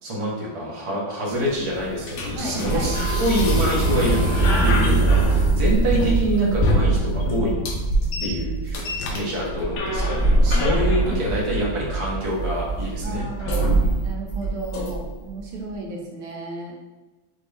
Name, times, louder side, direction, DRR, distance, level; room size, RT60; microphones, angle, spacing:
voice 1, 0.0-4.2 4.6-7.5 8.2-13.3, equal, 30° right, -5 dB, 0.6 m, -26 dB
sound 1, 1.3-15.3, right 2 dB, 75° left, 1.5 m, -22 dB
voice 2, 2.3-2.9 10.5-11.2 13.0-16.7, right 2 dB, 80° right, -1 dB, 1.5 m, -34 dB
4.9 x 2.6 x 3.3 m, 1.2 s
omnidirectional pair, 2.3 m